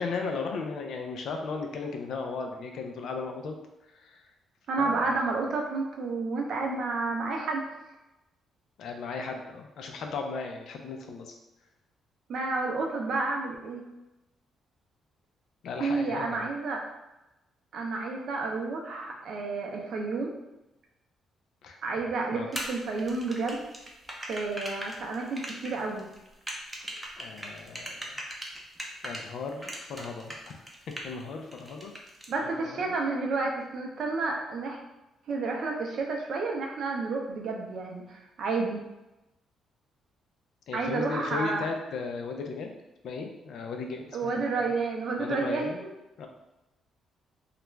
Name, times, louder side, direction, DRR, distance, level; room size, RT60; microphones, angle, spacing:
voice 1, 0.0-3.5 3.9-4.2 4.8-5.2 8.8-11.3 15.6-16.5 21.6-21.8 22.3-22.5 27.2-28.2 29.0-30.6 31.0-31.9 32.4-32.8 40.7-42.7 43.0-44.7 45.2-45.8 46.2-46.3, left 4 dB, 70° left, 3 dB, 0.4 m, -36 dB
voice 2, 4.7-7.6 12.3-13.8 15.8-16.8 17.7-20.3 21.8-23.7 24.3-26.1 32.3-34.8 35.3-38.8 40.7-41.7 44.1-45.7, right 3 dB, 65° right, 1 dB, 0.5 m, -30 dB
sound 1, 22.5-29.2 29.6-31.2 31.5-32.3, right 1 dB, 15° right, 0.5 m, -39 dB
2.4 x 2.1 x 3.1 m, 0.97 s
cardioid pair, 90°, 0 cm